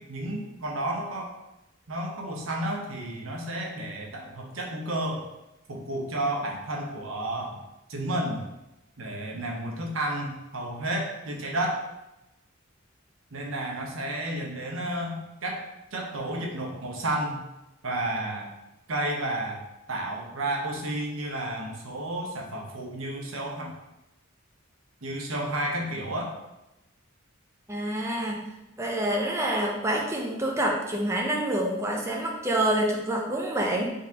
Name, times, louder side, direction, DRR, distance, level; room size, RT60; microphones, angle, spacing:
voice 1, 0.0-1.3 1.9-5.3 5.7-7.6 7.9-8.4 9.0-11.8 13.3-15.6 15.9-17.4 17.8-18.5 18.9-19.6 19.9-23.7 25.0-26.3, right 1 dB, 80° right, -1 dB, 0.8 m, -31 dB
voice 2, 27.7-28.4 28.8-33.9, right 1 dB, 15° right, -1 dB, 0.5 m, -27 dB
3.9 x 3.6 x 2.8 m, 0.94 s
head